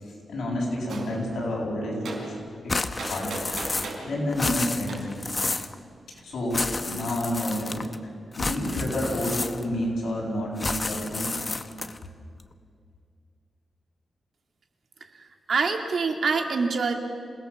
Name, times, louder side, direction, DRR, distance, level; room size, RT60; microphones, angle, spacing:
voice 1, 0.3-2.4 2.6-3.4 4.0-5.0 6.1-7.8 8.4-11.3, left 1 dB, 70° left, -3 dB, 8.0 m, -29 dB
Gunshot gunfire, 0.9-1.1 2.1-2.2 3.0-4.1 4.9-5.0, right 3 dB, 80° right, 4.9 m, -36 dB
sound 1, 2.7-4.0 4.3-5.7 6.5-8.0 8.3-9.8 10.6-12.0, left 3 dB, 25° left, 0.8 m, -31 dB
voice 2, 15.5-16.9, right 4 dB, 55° right, 4 dB, 2.2 m, -25 dB
27.0 x 18.0 x 7.3 m, 2.3 s
wide cardioid pair, 160°, 0 cm